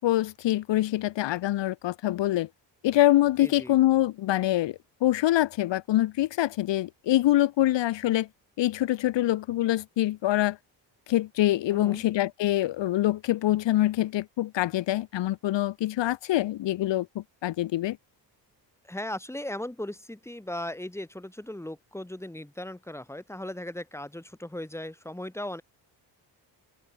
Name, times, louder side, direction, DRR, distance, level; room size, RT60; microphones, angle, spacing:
voice 1, 0.0-2.5 2.8-8.3 8.6-10.6 11.1-18.0, left 15 dB, 85° left, 1.0 m, -25 dB
voice 2, 3.4-3.8 11.7-12.0 18.8-25.6, left 1 dB, 5° left, 6.5 m, -37 dB
open air
cardioid pair, 125°, 43 cm